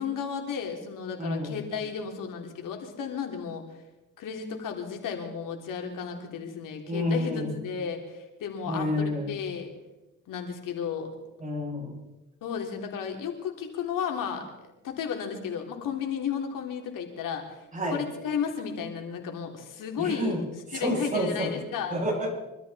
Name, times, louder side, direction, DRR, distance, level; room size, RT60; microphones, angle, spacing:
voice 1, 0.0-3.6 4.2-9.7 10.3-11.1 12.4-14.4 14.8-17.6 17.9-20.4 20.7-22.0, left 7 dB, 75° left, 3 dB, 3.3 m, -33 dB
voice 2, 1.2-1.6 6.9-7.5 8.7-9.3 11.4-11.9 17.7-18.0 20.0-20.4 20.7-21.5 21.9-22.3, equal, 25° right, -3 dB, 7.7 m, -29 dB
24.5 x 13.5 x 4.2 m, 0.98 s
cardioid pair, 95°, 33 cm